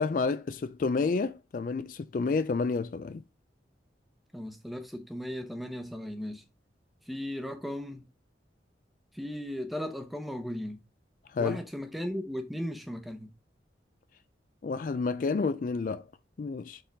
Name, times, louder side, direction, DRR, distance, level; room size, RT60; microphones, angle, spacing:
voice 1, 0.0-3.2 11.3-11.6 14.6-16.0 16.4-16.8, left 4 dB, 45° left, 0.3 m, -29 dB
voice 2, 4.3-6.4 7.0-8.0 9.1-10.8 11.4-13.3, equal, ahead, 0.8 m, -36 dB
6.6 x 3.8 x 3.9 m
head